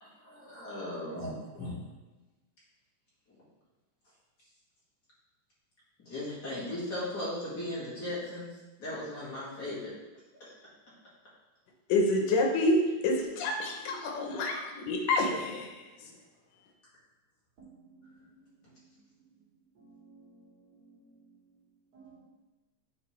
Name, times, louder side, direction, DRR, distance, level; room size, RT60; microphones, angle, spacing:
voice 1, 0.0-1.8 3.3-3.4 6.0-9.9 10.4-10.5 16.0-16.1, left 1 dB, 35° left, -9 dB, 2.2 m, -37 dB
voice 2, 11.9-12.8 13.0-15.8, left 2 dB, 85° left, 1 dB, 2.6 m, -28 dB
voice 3, 17.6-18.2 19.8-20.3 21.9-22.2, right 5 dB, 65° right, -4 dB, 2.8 m, -55 dB
8.1 x 5.2 x 3.2 m, 1.1 s
omnidirectional pair, 3.7 m